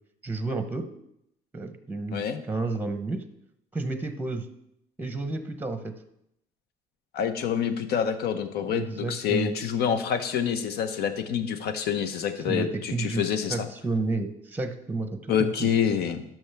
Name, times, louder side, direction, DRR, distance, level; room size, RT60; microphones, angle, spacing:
voice 1, 0.2-0.9 1.5-3.2 3.7-4.4 5.0-5.9 8.6-9.6 12.5-13.2 13.5-15.7, right 3 dB, 10° right, 9 dB, 0.8 m, -31 dB
voice 2, 2.1-2.4 7.1-13.7 15.3-16.2, left 8 dB, 70° left, 10 dB, 0.9 m, -27 dB
12.5 x 6.0 x 3.4 m, 0.78 s
cardioid pair, 110°, 17 cm